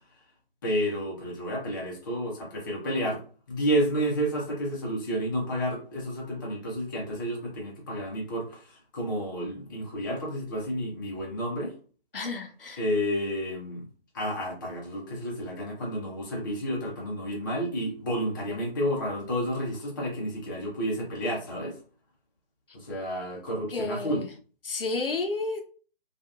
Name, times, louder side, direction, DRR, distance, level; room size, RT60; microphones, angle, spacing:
voice 1, 0.6-3.2 3.5-11.7 12.8-13.8 14.1-21.8 22.7-24.2, equal, 20° left, -3 dB, 0.6 m, -30 dB
voice 2, 12.1-12.8 23.7-24.3 24.6-25.6, left 3 dB, 65° left, 4 dB, 0.7 m, -31 dB
2.8 x 2.4 x 2.4 m, 0.39 s
figure-of-eight pair, 145°, 30 cm